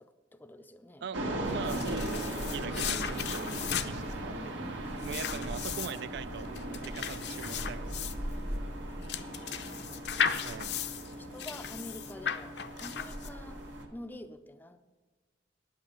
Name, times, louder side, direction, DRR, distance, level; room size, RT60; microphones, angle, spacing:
voice 1, 0.0-1.1 4.2-5.6 8.7-10.4 11.1-13.6 13.9-14.8, left 1 dB, 10° left, 10 dB, 0.4 m, -49 dB
voice 2, 1.0-4.5 5.0-8.1 10.4-10.8, right 7 dB, 60° right, 16 dB, 0.3 m, -42 dB
sound 1, 1.1-13.9, right 1 dB, 85° right, 1.5 m, -38 dB
sound 2, 1.5-13.6, left 8 dB, 60° left, 0.6 m, -36 dB
9.6 x 8.7 x 6.7 m, 1.3 s
head